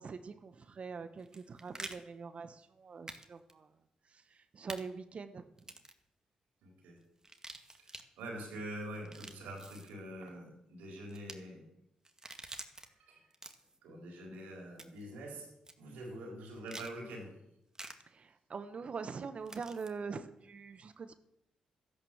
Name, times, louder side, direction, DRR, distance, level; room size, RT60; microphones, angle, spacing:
voice 1, 0.0-3.7 4.1-5.4 18.1-21.1, right 5 dB, 50° right, 11 dB, 1.1 m, -44 dB
sound 1, 1.2-2.0 3.1-3.2 3.5-3.6 4.7-4.8 5.6-6.0 7.2-8.0 9.0-9.9 11.1-11.4 12.1-12.9 13.3-13.8 14.8-15.1 15.7-15.8 16.7-16.9 17.8-17.9 19.5-19.9, right 2 dB, 25° right, 2.1 m, -47 dB
voice 2, 6.6-7.0 7.8-11.7 12.5-13.2 13.8-15.5 15.8-17.3, right 1 dB, 80° right, 1 dB, 4.7 m, -45 dB
13.0 x 11.0 x 7.2 m, 0.82 s
supercardioid pair, 50°, 3 cm